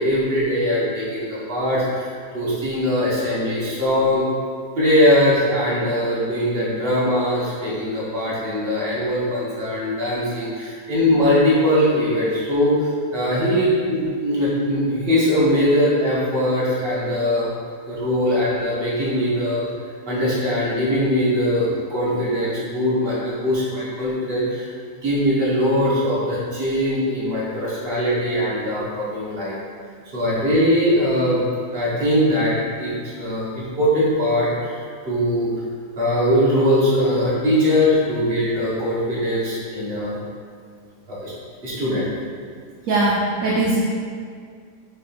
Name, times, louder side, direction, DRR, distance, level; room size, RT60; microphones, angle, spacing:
voice 1, 0.0-4.2 4.8-17.5 17.9-19.6 20.1-24.7 25.0-29.6 30.1-31.4 31.7-35.5 36.0-40.2 41.1-41.3 41.6-42.1, equal, 35° right, -8 dB, 1.7 m, -21 dB
voice 2, 42.9-43.8, right 2 dB, 60° right, -5 dB, 1.1 m, -20 dB
6.1 x 3.4 x 4.5 m, 2.1 s
omnidirectional pair, 1.8 m